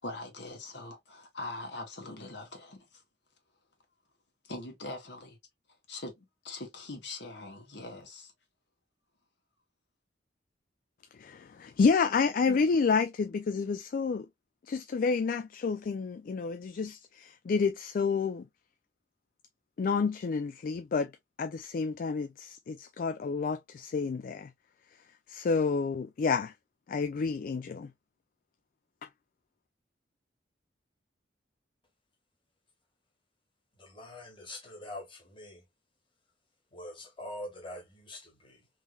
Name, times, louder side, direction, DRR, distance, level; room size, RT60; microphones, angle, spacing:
voice 1, 0.0-3.0 4.4-5.4 5.9-8.3, left 2 dB, 70° left, 1.4 m, -42 dB
voice 2, 11.2-14.3 14.7-18.4 19.8-21.1 21.4-24.5 25.3-26.5 26.9-27.9, left 5 dB, 50° left, 0.3 m, -29 dB
voice 3, 33.7-35.7 36.7-38.7, left 1 dB, 30° left, 1.7 m, -44 dB
3.6 x 3.2 x 2.3 m
head